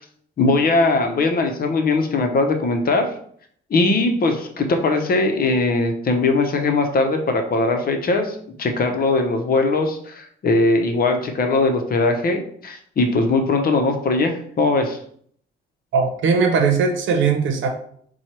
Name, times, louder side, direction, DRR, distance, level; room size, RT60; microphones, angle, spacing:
voice 1, 0.4-3.1 3.7-15.0, left 3 dB, 50° left, 5 dB, 0.8 m, -20 dB
voice 2, 15.9-17.7, right 5 dB, 75° right, 5 dB, 0.8 m, -19 dB
4.3 x 2.3 x 4.5 m, 0.62 s
cardioid pair, 90°, 20 cm